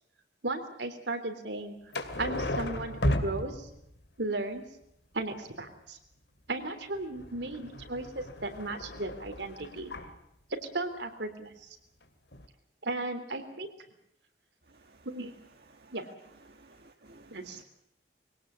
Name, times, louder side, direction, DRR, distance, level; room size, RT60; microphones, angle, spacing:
voice 1, 0.4-1.8 2.2-3.7 4.2-4.7 5.1-6.0 6.5-9.9 10.5-11.7 12.8-13.7 15.0-15.3 15.9-16.0 17.3-17.6, right 2 dB, 80° right, 7 dB, 3.4 m, -35 dB
sound 1, 1.9-4.1 6.9-10.2 12.0-12.1 12.3-12.5, left 1 dB, 70° left, 2.5 m, -34 dB
voice 2, 14.7-15.1 15.7-15.9 16.5-17.6, right 2 dB, 65° right, 4 dB, 1.6 m, -57 dB
23.0 x 18.0 x 8.3 m, 0.80 s
head